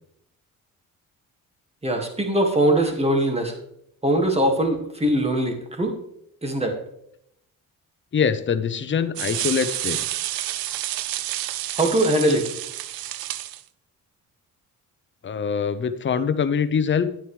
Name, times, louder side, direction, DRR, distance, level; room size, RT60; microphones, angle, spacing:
voice 1, 1.8-3.5 4.0-5.9 6.4-6.8 11.8-12.4, right 1 dB, 15° right, 3 dB, 1.9 m, -21 dB
voice 2, 8.1-10.0 15.2-17.1, left 6 dB, 35° left, 11 dB, 0.7 m, -23 dB
sound 1, 9.2-13.6, right 14 dB, 90° right, 0.5 m, -29 dB
10.0 x 9.3 x 3.2 m, 0.74 s
cardioid pair, 95°, 35 cm